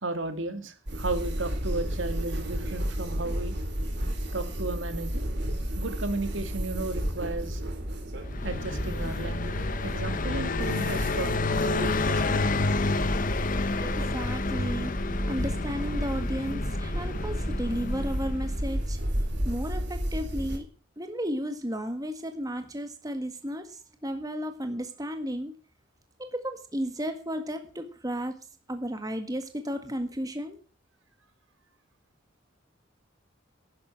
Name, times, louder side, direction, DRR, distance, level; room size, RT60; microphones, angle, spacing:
voice 1, 0.0-3.6 4.3-5.3 5.8-7.6 8.4-12.4, right 2 dB, 75° right, 9 dB, 2.3 m, -34 dB
sound 1, 0.9-20.6, equal, 60° right, 3.1 m, -32 dB
Car passing by, 8.2-18.8, left 3 dB, 45° left, 0.9 m, -30 dB
voice 2, 13.8-14.9 15.2-20.7 21.0-25.5 26.2-28.3 28.7-30.6, equal, 20° right, 7 dB, 1.7 m, -34 dB
11.5 x 10.5 x 7.6 m, 0.39 s
head